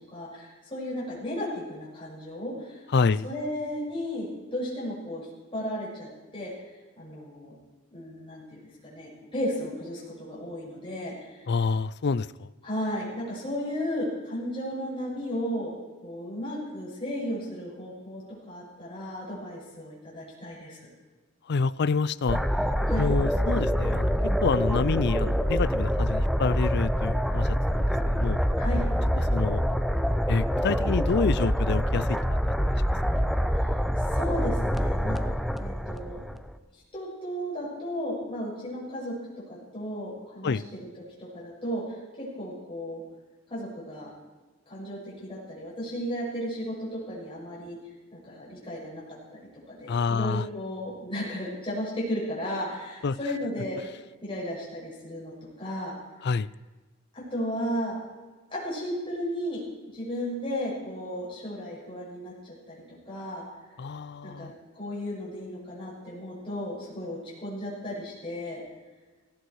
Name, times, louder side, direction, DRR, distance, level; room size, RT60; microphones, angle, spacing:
voice 1, 0.1-2.8 3.2-5.3 5.5-6.5 7.0-7.5 7.9-11.4 12.6-15.7 16.0-20.9 22.8-23.0 28.6-28.8 33.5-33.6 34.1-35.2 35.6-36.2 36.9-39.1 39.5-40.6 41.2-43.0 43.5-44.1 44.7-47.8 48.1-49.0 49.3-49.4 49.7-53.8 54.2-55.9 57.1-58.0 58.5-59.6 59.9-62.8 63.1-63.4 64.2-68.6, equal, 25° left, -6 dB, 6.8 m, -34 dB
voice 2, 2.9-3.3 11.5-12.5 21.5-22.4 23.0-28.4 29.3-29.6 30.3-32.5 33.2-33.3 40.4-40.6 49.9-50.5 53.0-53.2 56.2-56.5 63.8-64.5, left 4 dB, 55° left, 18 dB, 0.4 m, -27 dB
sound 1, 22.3-36.5, equal, ahead, 0.6 m, -26 dB
18.0 x 15.5 x 4.8 m, 1.3 s
head